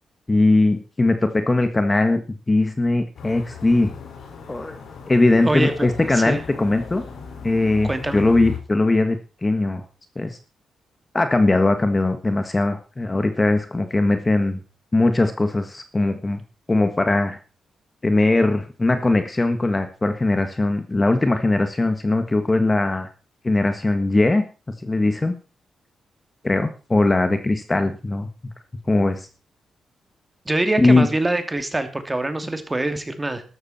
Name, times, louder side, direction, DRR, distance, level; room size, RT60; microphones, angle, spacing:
voice 1, 0.3-3.9 4.5-4.8 5.1-7.0 7.4-9.2 9.4-9.8 10.1-10.4 11.1-14.6 14.9-16.4 16.7-17.4 18.0-23.1 23.4-24.4 24.8-25.3 26.4-28.3 28.9-29.3 30.8-31.1, left 2 dB, 20° left, 8 dB, 1.7 m, -20 dB
sound 1, 3.2-8.6, left 6 dB, 75° left, 5.2 m, -37 dB
voice 2, 5.4-5.9 6.1-6.4 7.8-8.2 30.5-33.4, right 2 dB, 15° right, 8 dB, 2.7 m, -24 dB
13.0 x 13.0 x 4.3 m, 0.35 s
cardioid pair, 105°, 0 cm